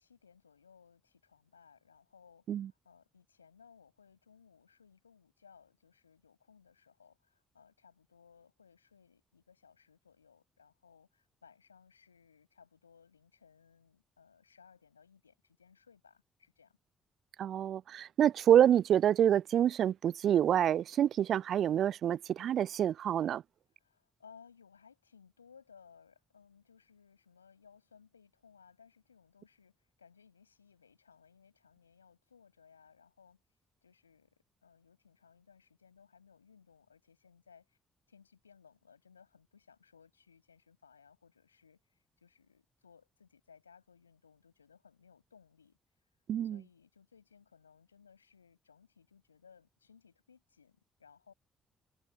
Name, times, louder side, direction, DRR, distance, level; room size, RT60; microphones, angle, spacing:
voice 1, 0.0-16.8 23.7-33.4 33.8-34.3 34.6-37.8 38.1-45.8 46.4-51.3, left 6 dB, 85° left, 6.2 m, -62 dB
voice 2, 17.4-23.4 46.3-46.6, right 10 dB, 55° right, 0.3 m, -27 dB
figure-of-eight pair, 40°, 0 cm